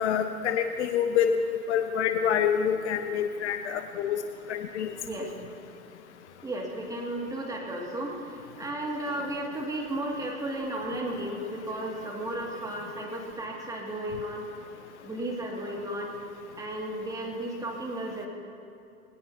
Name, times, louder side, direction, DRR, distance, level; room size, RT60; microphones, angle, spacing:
voice 1, 0.0-4.2 4.5-4.9, left 8 dB, 50° left, 8 dB, 0.8 m, -27 dB
voice 2, 6.4-14.5 15.0-16.2 16.6-18.3, right 1 dB, 5° right, -2 dB, 2.4 m, -34 dB
20.5 x 19.0 x 2.9 m, 2.6 s
figure-of-eight pair, 105°, 46 cm